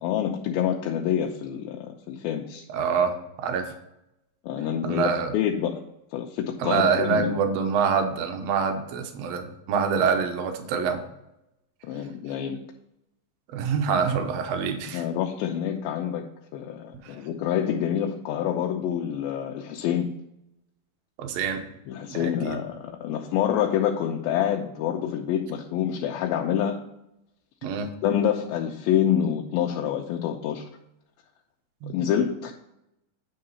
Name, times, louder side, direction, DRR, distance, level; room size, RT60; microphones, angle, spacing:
voice 1, 0.0-2.7 4.4-5.8 6.1-7.3 11.8-12.6 14.9-16.3 16.5-20.1 21.9-26.8 28.0-30.7 31.9-32.5, left 9 dB, 85° left, 1 dB, 2.4 m, -27 dB
voice 2, 2.7-3.7 4.8-5.3 6.6-11.0 13.5-15.0 21.2-21.6 22.1-22.6 27.6-27.9 31.8-31.9, right 6 dB, 80° right, 5 dB, 1.5 m, -25 dB
9.2 x 3.8 x 5.5 m, 0.84 s
omnidirectional pair, 4.2 m